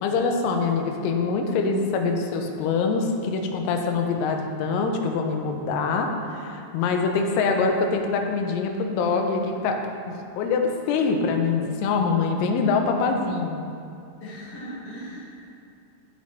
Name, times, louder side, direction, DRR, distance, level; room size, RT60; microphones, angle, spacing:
voice 1, 0.0-9.8 10.1-13.6, left 4 dB, 80° left, 3 dB, 2.7 m, -24 dB
voice 2, 14.2-15.4, equal, 60° left, -10 dB, 1.4 m, -38 dB
11.0 x 5.4 x 3.2 m, 2.5 s
omnidirectional pair, 5.0 m